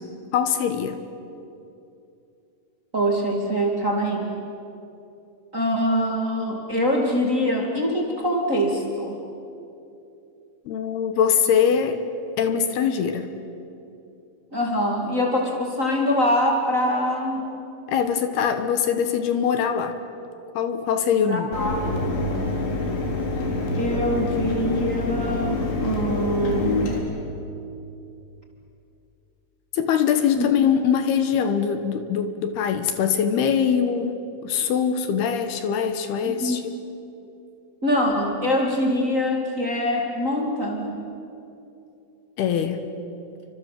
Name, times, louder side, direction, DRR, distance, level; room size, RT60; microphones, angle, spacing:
voice 1, 0.3-1.0 10.7-12.0 12.4-13.3 17.9-20.0 20.5-21.5 29.7-36.6 42.4-42.8, left 7 dB, 70° left, 8 dB, 3.1 m, -22 dB
voice 2, 2.9-4.3 5.5-9.2 14.5-17.6 21.3-21.8 23.8-27.0 30.3-30.6 36.3-36.6 37.8-41.1, equal, 25° right, 0 dB, 2.3 m, -24 dB
Mechanisms, 21.5-27.0, left 2 dB, 90° left, 5.5 m, -26 dB
29.5 x 25.0 x 7.6 m, 2.7 s
omnidirectional pair, 4.9 m